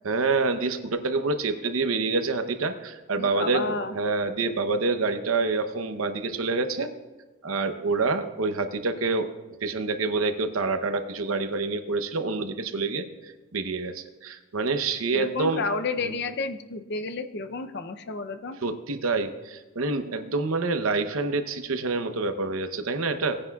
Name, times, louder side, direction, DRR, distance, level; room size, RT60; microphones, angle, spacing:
voice 1, 0.0-6.9 7.4-9.3 9.6-15.6 16.0-16.2 18.6-23.4, right 3 dB, 80° right, 9 dB, 0.8 m, -27 dB
voice 2, 3.2-4.0 15.1-18.6, left 3 dB, 55° left, 9 dB, 0.6 m, -31 dB
18.5 x 9.7 x 2.4 m, 1.2 s
head